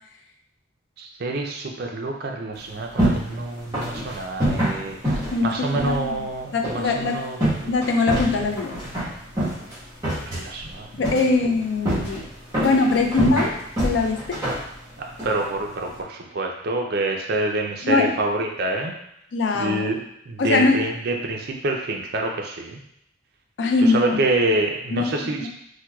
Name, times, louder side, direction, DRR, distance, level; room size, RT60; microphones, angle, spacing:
voice 1, 1.0-7.5 10.3-10.9 12.6-12.7 15.0-18.9 19.5-20.0 20.3-22.8 23.9-25.5, right 2 dB, 55° right, 2 dB, 0.5 m, -27 dB
sound 1, 2.5-16.0, equal, 20° right, 1.2 m, -28 dB
voice 2, 5.2-6.2 6.5-7.2 7.7-8.8 10.9-12.2 12.6-13.6 13.8-14.4 17.8-18.1 19.3-19.9 20.4-20.8 23.6-24.2 24.9-25.5, left 3 dB, 65° left, 3 dB, 0.4 m, -22 dB
4.3 x 2.2 x 2.3 m, 0.75 s
head